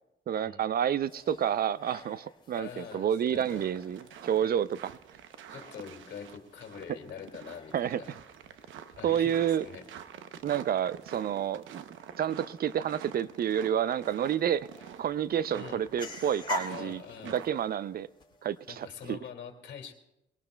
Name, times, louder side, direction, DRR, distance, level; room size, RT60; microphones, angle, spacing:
voice 1, 0.3-5.0 7.7-8.0 9.0-9.7 10.4-11.8 12.2-14.7 15.0-18.1 18.4-19.2, right 9 dB, 50° right, 17 dB, 0.5 m, -29 dB
sound 1, 1.0-19.1, left 3 dB, 25° left, 4.9 m, -47 dB
voice 2, 2.5-3.6 5.5-8.2 8.6-8.7 9.0-9.8 15.5-15.8 16.7-17.4 18.7-19.9, left 7 dB, 65° left, 3 dB, 2.3 m, -44 dB
sound 2, 3.2-17.7, right 8 dB, 75° right, 0.8 m, -48 dB
22.5 x 18.0 x 2.3 m, 0.89 s
cardioid pair, 90°, 20 cm